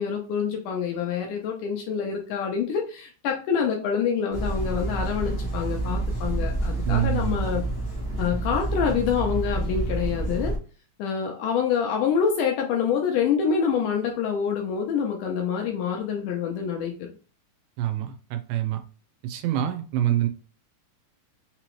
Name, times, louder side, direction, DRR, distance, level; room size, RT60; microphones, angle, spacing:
voice 1, 0.0-7.6 8.2-10.6 11.0-17.1, left 7 dB, 75° left, 2 dB, 2.0 m, -26 dB
sound 1, 4.3-10.6, right 2 dB, 30° left, 0.4 m, -28 dB
voice 2, 6.9-7.4 17.8-18.8 19.2-20.3, right 12 dB, 85° right, 6 dB, 2.5 m, -26 dB
5.8 x 3.0 x 3.0 m, 0.36 s
omnidirectional pair, 4.3 m